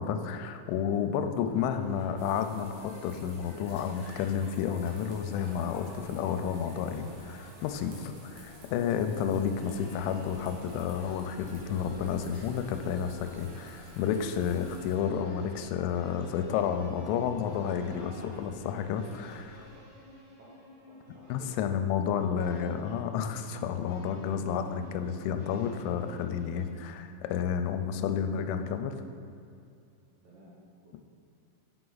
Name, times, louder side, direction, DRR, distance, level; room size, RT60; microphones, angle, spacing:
voice 1, 0.0-19.6 21.3-28.9, left 7 dB, 90° left, 7 dB, 3.0 m, -31 dB
sound 1, 1.5-19.8, left 1 dB, 65° left, 1.7 m, -51 dB
sound 2, 2.2-15.0, right 3 dB, 85° right, 3.7 m, -57 dB
sound 3, 9.6-26.7, equal, 50° right, 2.2 m, -54 dB
voice 2, 20.9-23.2 30.2-31.0, equal, 70° right, -6 dB, 2.1 m, -52 dB
7.8 x 5.9 x 3.9 m, 2.5 s
omnidirectional pair, 5.4 m